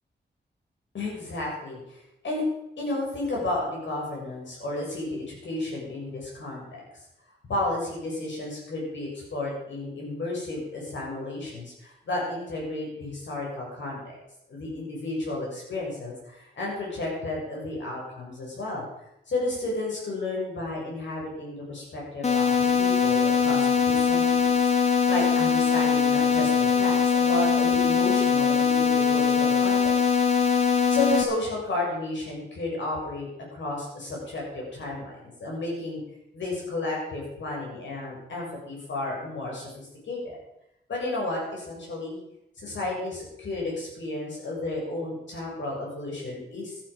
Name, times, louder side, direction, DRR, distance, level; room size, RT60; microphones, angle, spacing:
voice 1, 0.9-2.0 2.2-2.4 2.8-6.8 7.5-14.1 14.5-18.8 19.3-30.1 30.9-36.0 36.3-40.4 40.9-42.2 42.6-46.8, left 2 dB, 75° left, -3 dB, 7.2 m, -32 dB
sound 1, 22.2-31.2, left 6 dB, 35° left, 1.7 m, -22 dB
14.0 x 12.5 x 5.4 m, 0.85 s
wide cardioid pair, 150°, 19 cm